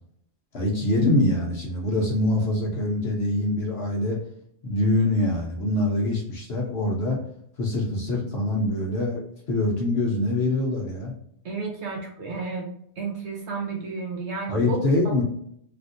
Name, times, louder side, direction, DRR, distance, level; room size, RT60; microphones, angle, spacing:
voice 1, 0.5-4.2 4.6-7.2 7.6-9.2 9.5-11.1 14.5-15.2, left 2 dB, 55° left, -2 dB, 0.9 m, -24 dB
voice 2, 11.4-12.7 13.0-14.8 15.0-15.2, right 4 dB, 60° right, -1 dB, 0.8 m, -32 dB
3.5 x 2.5 x 2.5 m, 0.69 s
omnidirectional pair, 1.5 m